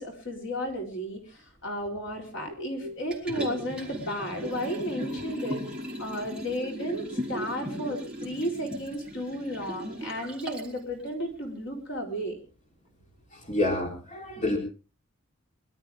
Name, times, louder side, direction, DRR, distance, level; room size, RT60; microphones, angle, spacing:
voice 1, 0.0-5.6 6.0-12.4, equal, 65° left, 1 dB, 4.2 m, -33 dB
Liquid, 3.1-10.8 11.2-11.3, equal, 5° right, 3.6 m, -37 dB
voice 2, 13.3-14.6, left 1 dB, 40° left, 1 dB, 3.7 m, -28 dB
24.0 x 12.5 x 3.6 m, 0.35 s
head